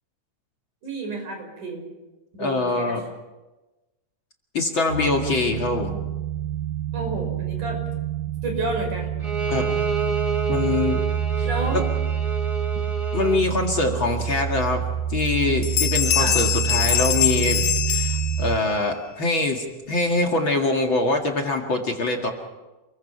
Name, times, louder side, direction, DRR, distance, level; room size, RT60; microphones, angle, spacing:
voice 1, 0.8-1.8 2.3-3.0 6.9-7.8 8.4-9.1 11.4-11.9 16.2-16.4, right 2 dB, 75° right, 3 dB, 7.3 m, -30 dB
voice 2, 2.4-3.0 4.5-6.0 9.5-9.7 10.5-11.0 11.4-11.8 13.1-14.8 15.1-22.3, left 2 dB, 40° left, 2 dB, 2.5 m, -24 dB
sound 1, 4.9-18.6, right 10 dB, 90° right, 3.3 m, -27 dB
Bowed string instrument, 9.2-13.5, right 5 dB, 20° right, 0.8 m, -29 dB
sound 2, 14.6-14.7 15.1-15.4 15.6-18.8, left 11 dB, 80° left, 3.0 m, -24 dB
29.0 x 22.5 x 5.7 m, 1.1 s
omnidirectional pair, 3.6 m